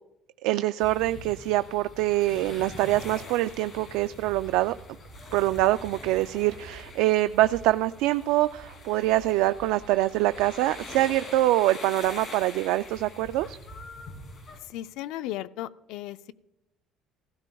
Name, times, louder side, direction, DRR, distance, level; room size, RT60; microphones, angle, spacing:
voice 1, 0.4-4.7 5.3-13.6, right 16 dB, 85° right, 12 dB, 0.3 m, -24 dB
sound 1, 0.8-14.6, left 1 dB, 35° left, 2.7 m, -44 dB
voice 2, 14.6-16.3, left 14 dB, 75° left, 13 dB, 0.4 m, -36 dB
16.5 x 16.0 x 2.3 m, 0.94 s
cardioid pair, 155°, 0 cm